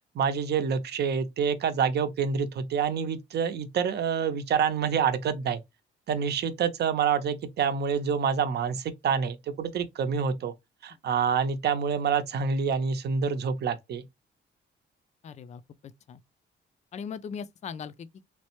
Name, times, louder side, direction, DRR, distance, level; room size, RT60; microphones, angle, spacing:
voice 1, 0.1-5.6 6.1-10.5 10.8-14.0, right 6 dB, 55° right, 0.6 m, -27 dB
voice 2, 15.2-16.2 16.9-18.1, left 6 dB, 35° left, 0.4 m, -39 dB
3.2 x 2.1 x 2.9 m
cardioid pair, 90°, 20 cm